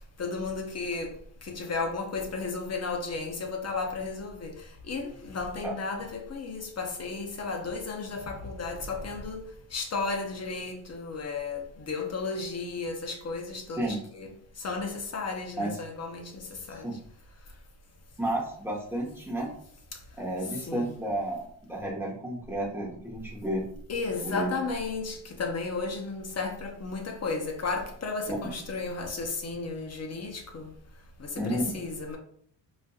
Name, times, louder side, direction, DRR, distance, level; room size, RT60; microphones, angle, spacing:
voice 1, 0.2-1.2 1.4-4.6 4.9-9.5 9.7-14.3 14.6-16.9 20.7-21.0 23.9-30.7 31.2-32.2, left 4 dB, 35° left, 0.7 m, -34 dB
voice 2, 18.2-19.5 20.2-23.6 24.2-24.5 28.3-28.4 31.4-31.7, right 1 dB, 5° right, 1.0 m, -32 dB
4.1 x 2.4 x 2.4 m
cardioid pair, 100°, 45 cm